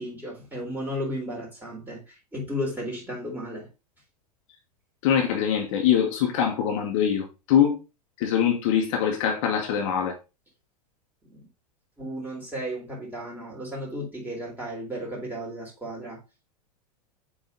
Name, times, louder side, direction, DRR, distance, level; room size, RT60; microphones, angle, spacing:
voice 1, 0.0-3.7 11.3-11.4 12.0-16.2, equal, 10° right, 3.8 m, -34 dB
voice 2, 5.0-7.8 8.2-10.2, left 8 dB, 50° left, 1.6 m, -23 dB
7.8 x 3.9 x 3.8 m
figure-of-eight pair, 90°, 20 cm